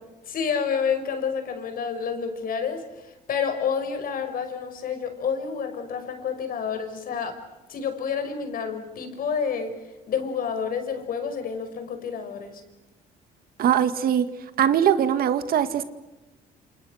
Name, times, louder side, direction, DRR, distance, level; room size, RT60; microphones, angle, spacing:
voice 1, 0.3-7.4 7.7-9.7 10.1-12.6, left 6 dB, 60° left, 8 dB, 5.3 m, -29 dB
voice 2, 13.6-14.3 14.6-15.8, right 9 dB, 60° right, 11 dB, 2.0 m, -21 dB
29.0 x 28.0 x 6.5 m, 1.1 s
cardioid pair, 110°, 17 cm